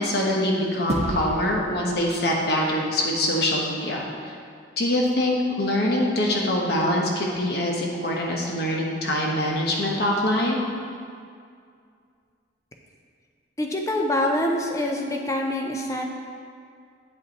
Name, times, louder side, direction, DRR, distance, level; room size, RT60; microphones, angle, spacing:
voice 1, 0.0-4.3 4.8-10.6, left 1 dB, 55° left, -2 dB, 1.1 m, -24 dB
sound 1, 0.9-3.5, right 1 dB, 35° right, 0.5 m, -33 dB
voice 2, 13.6-16.0, left 1 dB, 15° left, 1 dB, 0.6 m, -25 dB
8.3 x 5.5 x 4.1 m, 2.2 s
head